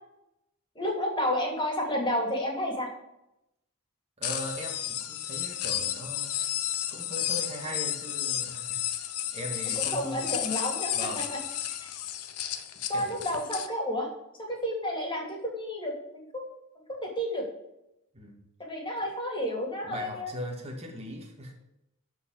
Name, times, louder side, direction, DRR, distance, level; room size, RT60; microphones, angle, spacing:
voice 1, 0.7-2.9 9.7-10.9 12.9-14.1 14.5-16.5 16.9-17.4 18.6-20.3, left 1 dB, 20° left, 0 dB, 3.0 m, -31 dB
sound 1, 4.2-13.7, left 11 dB, 85° left, 0.9 m, -32 dB
voice 2, 4.2-6.3 6.9-9.0 9.3-10.3 10.9-11.3 12.9-13.1 18.1-18.4 19.8-21.5, equal, 30° right, 0 dB, 2.1 m, -39 dB
12.0 x 4.8 x 7.7 m, 0.86 s
head